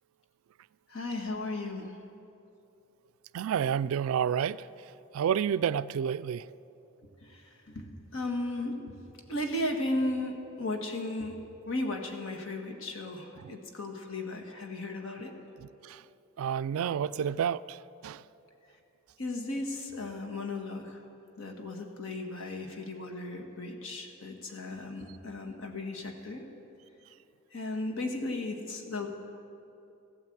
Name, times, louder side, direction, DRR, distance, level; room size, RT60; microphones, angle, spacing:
voice 1, 0.9-2.0 7.2-9.0 9.3-15.3 19.2-21.0 21.4-26.5 27.5-29.1, left 2 dB, 70° left, 3 dB, 1.5 m, -35 dB
voice 2, 3.3-4.7 5.1-6.5 13.4-13.5 15.8-16.0 16.4-18.2, right 8 dB, 75° right, 17 dB, 0.3 m, -30 dB
14.5 x 9.1 x 7.8 m, 2.7 s
head